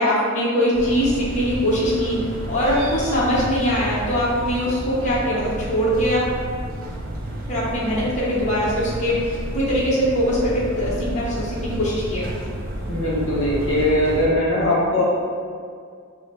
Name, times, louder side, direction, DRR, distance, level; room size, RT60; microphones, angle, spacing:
voice 1, 0.0-6.3 7.5-12.5, equal, 35° left, -8 dB, 0.9 m, -22 dB
sound 1, 0.7-14.3, right 1 dB, 45° right, 0.6 m, -31 dB
voice 2, 12.9-15.0, left 1 dB, 65° left, -5 dB, 0.9 m, -20 dB
4.8 x 2.0 x 4.4 m, 2.1 s
head